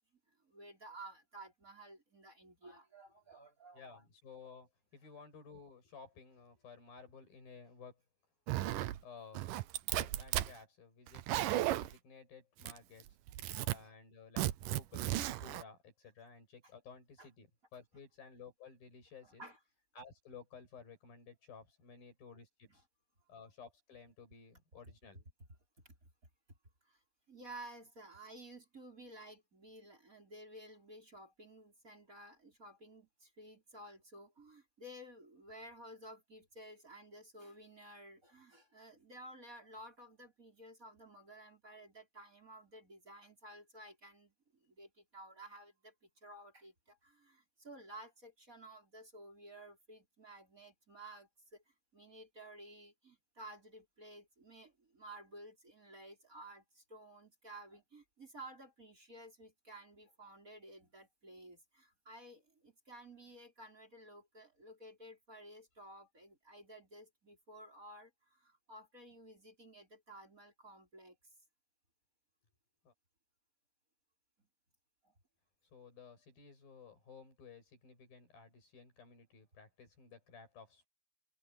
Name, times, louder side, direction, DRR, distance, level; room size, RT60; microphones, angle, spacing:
voice 1, 0.3-4.0 13.5-13.9 17.2-17.3 19.2-19.6 22.7-22.8 25.8-26.0 26.8-27.0 27.3-71.3 75.0-75.1, right 1 dB, 20° right, 5.7 m, -54 dB
voice 2, 3.7-8.0 9.0-9.5 9.9-13.2 13.7-19.5 19.9-22.8 23.3-25.3 72.8-72.9 75.7-80.9, left 5 dB, 85° left, 9.1 m, -55 dB
Zipper (clothing), 8.5-9.0 9.4-10.5 11.1-11.9 12.6-13.0 13.3-13.8 14.4-15.6, right 14 dB, 75° right, 2.4 m, -35 dB
omnidirectional pair, 4.0 m